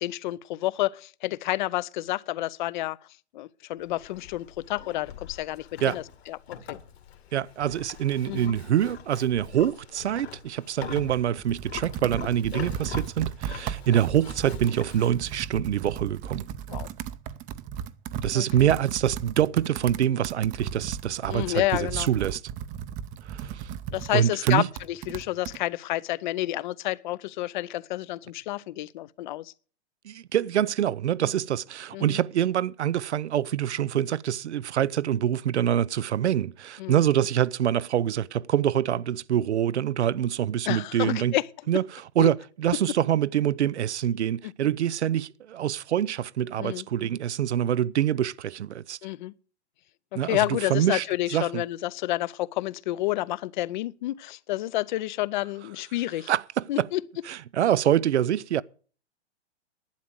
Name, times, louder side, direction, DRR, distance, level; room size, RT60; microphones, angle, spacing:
voice 1, 0.0-3.0 3.3-6.8 8.3-8.5 16.7-16.9 18.3-18.7 21.3-22.1 23.9-29.5 31.2-31.3 31.9-32.2 36.8-37.0 40.7-41.5 42.2-42.3 44.4-44.5 46.6-46.9 49.0-49.3 50.1-56.3 56.7-57.0, left 16 dB, 45° left, 0.6 m, -30 dB
Livestock farm animals working animals, 3.8-15.5, left 8 dB, 65° left, 2.3 m, -43 dB
voice 2, 7.3-16.5 18.2-22.4 23.2-23.7 24.1-24.7 30.0-41.3 41.7-41.8 42.2-49.0 50.1-51.0 51.3-51.6 56.3-56.9 57.3-58.6, right 10 dB, 80° right, 0.6 m, -25 dB
Computer keyboard, 11.0-25.6, right 9 dB, 25° right, 0.7 m, -36 dB
11.5 x 9.3 x 7.7 m
hypercardioid pair, 130°, 33 cm